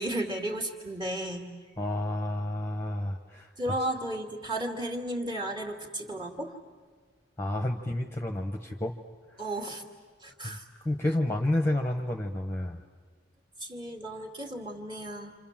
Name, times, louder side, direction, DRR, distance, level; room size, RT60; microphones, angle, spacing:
voice 1, 0.0-1.5 3.6-6.6 9.4-9.8 10.2-10.7 13.6-15.3, right 1 dB, 20° right, 2 dB, 2.4 m, -34 dB
voice 2, 1.8-3.5 7.4-8.9 10.4-12.8, left 1 dB, 10° left, 4 dB, 1.1 m, -30 dB
28.5 x 27.5 x 7.4 m, 1.5 s
head